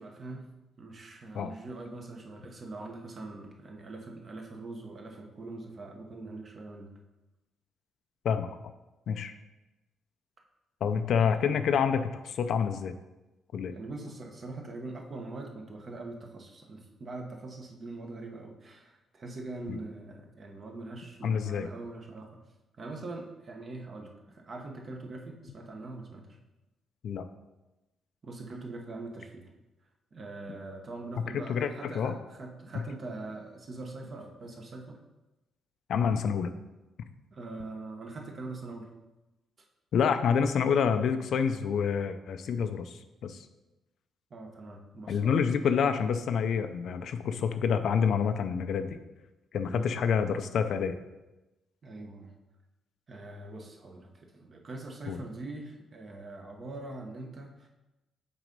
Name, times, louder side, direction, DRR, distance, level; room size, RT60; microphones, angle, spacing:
voice 1, 0.0-6.9 11.1-11.6 13.7-22.4 22.8-26.4 28.2-29.5 30.1-35.0 37.3-38.9 44.3-45.4 49.6-49.9 51.8-52.3 53.1-57.7, right 2 dB, 40° right, 2 dB, 1.1 m, -42 dB
voice 2, 10.8-12.9 13.5-13.7 19.7-19.8 21.2-21.7 27.0-27.2 31.3-32.1 35.9-36.5 39.9-43.4 45.1-49.0 49.5-51.0 55.1-55.2, left 7 dB, 65° left, 9 dB, 0.5 m, -28 dB
6.1 x 3.8 x 5.3 m, 1.0 s
cardioid pair, 90°, 0 cm